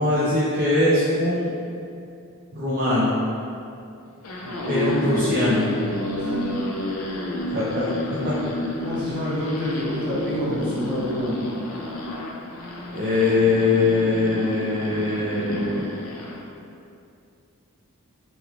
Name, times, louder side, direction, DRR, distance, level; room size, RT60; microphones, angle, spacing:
voice 1, 0.0-1.5 2.5-3.2 4.6-5.6 7.5-8.3 12.9-15.9, left 2 dB, 40° right, -10 dB, 0.5 m, -22 dB
sound 1, 4.1-16.4, left 1 dB, 70° left, 0.4 m, -31 dB
voice 2, 8.8-11.4, equal, 20° right, -14 dB, 1.4 m, -27 dB
3.5 x 3.0 x 2.3 m, 2.5 s
head